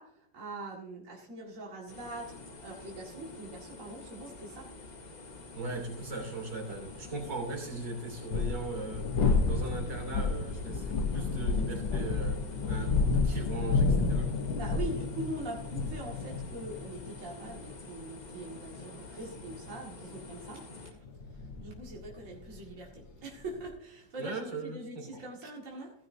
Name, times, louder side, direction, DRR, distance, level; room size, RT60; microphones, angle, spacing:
voice 1, 0.0-4.7 14.5-21.0 21.3-25.9, right 2 dB, 45° right, -3 dB, 2.3 m, -43 dB
sound 1, 1.9-20.9, left 2 dB, 35° left, 0.8 m, -48 dB
voice 2, 5.5-12.4 12.7-14.4 24.2-25.2, right 3 dB, 65° right, 0 dB, 3.7 m, -39 dB
sound 2, 5.9-6.0 8.1-23.7, left 4 dB, 80° left, 1.8 m, -31 dB
15.5 x 11.5 x 2.7 m, 0.73 s
omnidirectional pair, 2.0 m